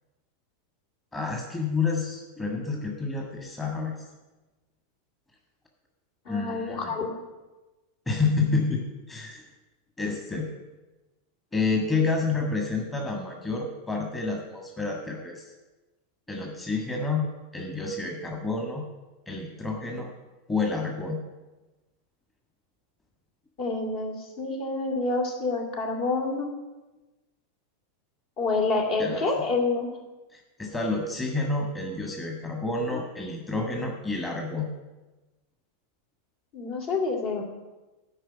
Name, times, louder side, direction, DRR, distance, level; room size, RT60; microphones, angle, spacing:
voice 1, 1.1-4.0 6.3-6.9 8.1-9.4 10.0-10.5 11.5-15.4 16.3-18.8 19.3-20.1 20.5-21.2 29.0-29.3 30.3-34.7, left 3 dB, 15° left, 1 dB, 1.6 m, -29 dB
voice 2, 6.3-7.2 23.6-26.5 28.4-29.9 36.5-37.4, left 3 dB, 50° left, 1 dB, 2.4 m, -28 dB
9.9 x 5.5 x 8.2 m, 1.1 s
figure-of-eight pair, 90°, 0 cm